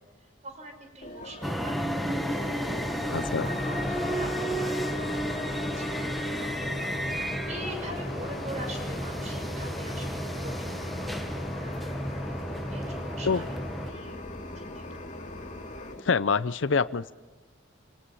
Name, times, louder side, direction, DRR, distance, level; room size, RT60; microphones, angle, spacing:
voice 1, 0.0-2.5 3.0-11.8 12.2-12.3 12.7-13.5 13.9-14.2 14.5-14.8, right 1 dB, 40° right, 4 dB, 5.8 m, -44 dB
sound 1, 1.0-16.0, left 1 dB, 40° left, 2.5 m, -39 dB
sound 2, 1.4-13.9, equal, ahead, 1.2 m, -32 dB
voice 2, 3.1-3.5 13.2-13.4 16.0-17.1, left 5 dB, 75° left, 14 dB, 0.6 m, -25 dB
Singing, 7.8-15.7, equal, 20° right, 3.3 m, -45 dB
27.0 x 18.5 x 5.6 m, 1.3 s
head